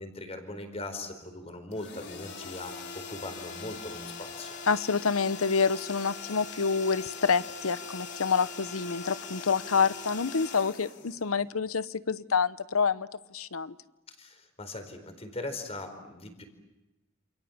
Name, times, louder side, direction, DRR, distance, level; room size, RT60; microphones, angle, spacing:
voice 1, 0.0-4.5 14.1-16.4, left 2 dB, 30° left, 8 dB, 4.5 m, -40 dB
sound 1, 1.7-11.7, left 5 dB, 55° left, 3.5 m, -42 dB
voice 2, 4.7-13.7, left 5 dB, 85° left, 15 dB, 0.9 m, -27 dB
28.5 x 28.0 x 7.3 m, 1.0 s
head